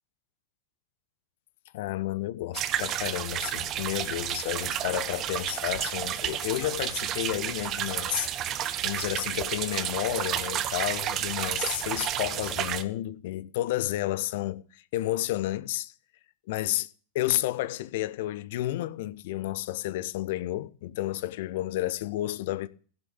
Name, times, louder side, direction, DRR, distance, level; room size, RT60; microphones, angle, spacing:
voice 1, 1.7-15.9 16.5-16.9 17.1-22.7, left 15 dB, 65° left, 1.0 m, -31 dB
sound 1, 2.5-12.8, right 11 dB, 40° right, 1.4 m, -31 dB
16.0 x 6.9 x 8.8 m
hypercardioid pair, 95°, 0 cm